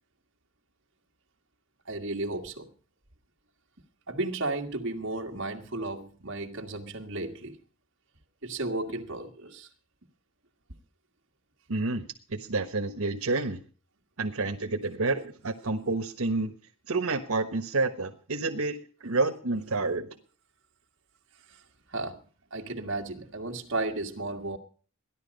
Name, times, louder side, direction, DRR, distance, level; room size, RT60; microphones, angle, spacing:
voice 1, 1.9-2.7 4.1-7.6 8.4-9.7 21.5-21.6 21.9-22.2 22.5-24.6, right 2 dB, 60° right, 1.8 m, -34 dB
voice 2, 11.7-12.0 12.3-13.6 14.2-16.5 16.9-18.8 19.0-20.1, right 3 dB, 85° right, 1.3 m, -29 dB
15.5 x 11.0 x 5.3 m
head